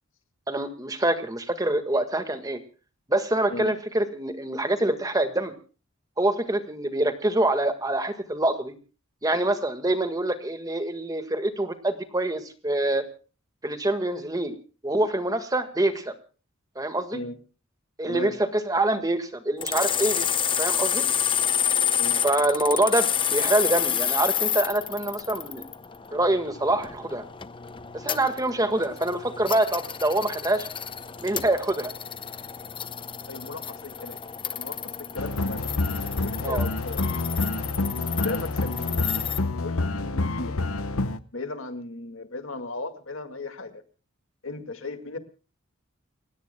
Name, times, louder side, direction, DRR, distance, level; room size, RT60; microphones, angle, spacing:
voice 1, 0.5-2.6 3.1-5.6 6.2-8.7 9.2-13.0 13.6-14.5 14.8-16.1 16.8-17.2 18.0-20.3 20.6-21.1 22.2-25.6 26.1-27.3 27.9-30.7 31.2-31.9 36.4-36.6, right 1 dB, 15° right, 8 dB, 1.7 m, -25 dB
sound 1, 19.6-39.4, left 8 dB, 25° left, 0.7 m, -30 dB
voice 2, 33.3-34.2 34.6-35.7 36.0-37.0 38.0-39.1 39.5-40.6 41.3-43.8 44.4-45.2, left 2 dB, 65° left, 8 dB, 2.1 m, -36 dB
sound 2, 35.2-41.2, left 2 dB, 80° left, 1.0 m, -28 dB
29.5 x 16.5 x 2.2 m, 0.37 s
head